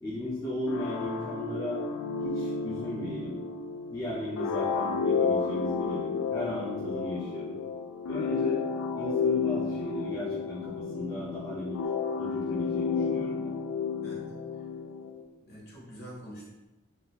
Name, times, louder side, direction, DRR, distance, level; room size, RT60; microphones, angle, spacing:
voice 1, 0.0-1.8 2.2-3.4 3.9-7.6 8.1-8.6 8.9-11.8 12.2-13.5, left 1 dB, 15° left, -7 dB, 0.5 m, -36 dB
sound 1, 0.7-15.2, left 5 dB, 80° left, 0.3 m, -31 dB
voice 2, 14.0-14.7 15.4-16.5, equal, 50° left, -5 dB, 1.1 m, -46 dB
3.8 x 2.7 x 2.3 m, 1.1 s
head